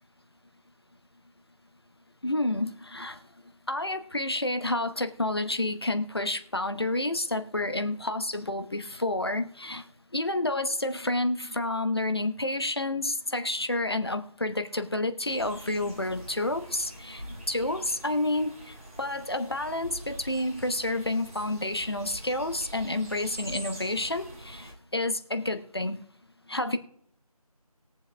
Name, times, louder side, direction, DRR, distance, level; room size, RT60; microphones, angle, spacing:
voice 1, 2.2-3.2 3.7-9.8 10.1-26.0 26.5-26.8, left 2 dB, 40° left, 9 dB, 0.8 m, -29 dB
sound 1, 15.2-24.7, right 1 dB, 25° right, 2.7 m, -45 dB
21.0 x 7.1 x 2.2 m, 0.63 s
figure-of-eight pair, 170°, 19 cm